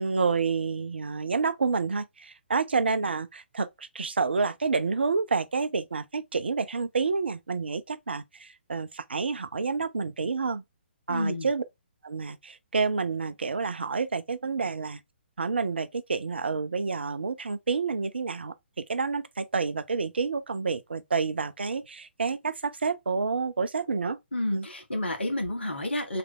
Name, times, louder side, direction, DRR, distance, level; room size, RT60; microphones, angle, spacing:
voice 1, 0.0-10.6 11.1-11.6 12.0-15.0 15.4-24.2 24.5-24.7, right 4 dB, 65° right, 0.5 m, -29 dB
voice 2, 11.1-11.5 24.3-26.2, left 1 dB, 75° left, 1.4 m, -30 dB
3.3 x 3.3 x 3.5 m
figure-of-eight pair, 130°, 6 cm